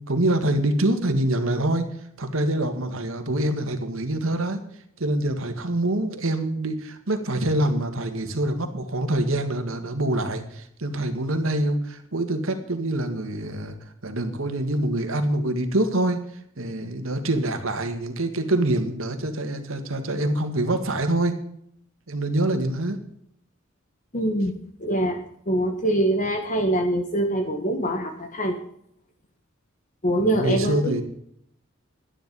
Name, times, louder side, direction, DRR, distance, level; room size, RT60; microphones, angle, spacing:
voice 1, 0.0-1.9 2.2-4.6 5.0-13.8 14.0-16.2 16.6-21.4 22.1-23.0 30.2-31.0, right 1 dB, 75° right, 7 dB, 1.9 m, -25 dB
voice 2, 24.1-25.2 25.5-28.6 30.0-31.0, right 1 dB, 40° left, 5 dB, 1.3 m, -24 dB
12.0 x 10.5 x 5.4 m, 0.71 s
head